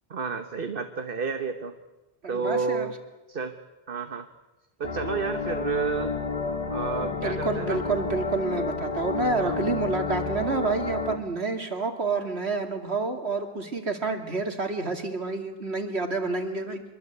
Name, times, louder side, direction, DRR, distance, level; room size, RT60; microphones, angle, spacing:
voice 1, 0.1-1.7 2.3-2.9 3.3-3.6 3.9-4.3 4.8-6.1 6.7-7.8 9.4-9.6, right 5 dB, 60° right, 7 dB, 1.4 m, -30 dB
voice 2, 2.2-2.9 7.0-16.8, right 3 dB, 85° right, 5 dB, 2.8 m, -29 dB
sound 1, 4.8-11.2, left 4 dB, 40° left, 1.3 m, -30 dB
26.0 x 22.0 x 8.2 m, 1.1 s
omnidirectional pair, 1.1 m